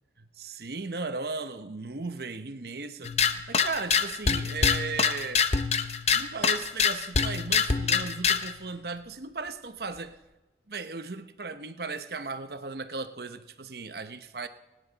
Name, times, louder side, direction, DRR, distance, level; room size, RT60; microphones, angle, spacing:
voice 1, 0.2-5.4 6.1-10.2 10.7-14.5, right 4 dB, 60° right, 9 dB, 0.9 m, -36 dB
sound 1, 3.0-8.5, left 6 dB, 35° left, 0.7 m, -25 dB
26.0 x 10.0 x 4.1 m, 1.1 s
head